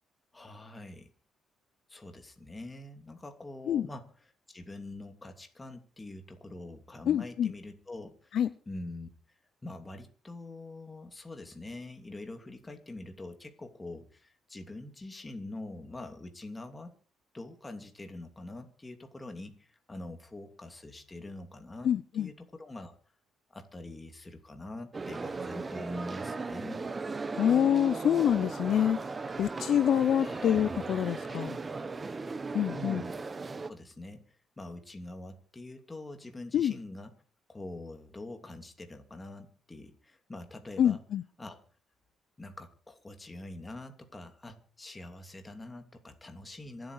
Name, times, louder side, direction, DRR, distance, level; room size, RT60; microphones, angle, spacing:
voice 1, 0.3-1.1 1.9-8.4 8.7-16.9 17.3-22.9 23.5-26.9 30.2-30.7 32.7-33.1 33.7-37.1 37.5-41.0 41.4-41.6 42.4-46.9, left 2 dB, 15° left, 6 dB, 2.8 m, -44 dB
voice 2, 7.1-7.5 8.3-8.5 21.8-22.3 27.4-29.0 29.4-31.6 32.5-33.0 36.5-36.7 40.8-41.2, left 9 dB, 60° left, 14 dB, 0.7 m, -26 dB
sound 1, 24.9-33.7, right 3 dB, 25° right, 1.1 m, -37 dB
26.5 x 8.9 x 4.9 m, 0.39 s
cardioid pair, 125°, 0 cm